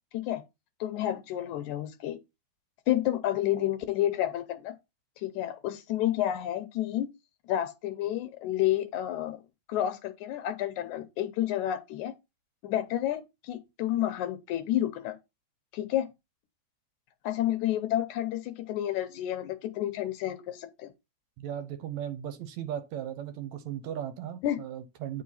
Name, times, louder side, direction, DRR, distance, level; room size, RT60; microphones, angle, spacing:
voice 1, 0.8-2.2 2.9-4.7 5.2-7.1 7.5-9.4 9.7-12.1 12.6-15.2 15.7-16.1 17.2-20.9 24.4-24.6, left 12 dB, 80° left, 2.0 m, -30 dB
voice 2, 21.4-25.2, right 10 dB, 70° right, 2.0 m, -37 dB
8.9 x 4.6 x 4.2 m
omnidirectional pair, 3.5 m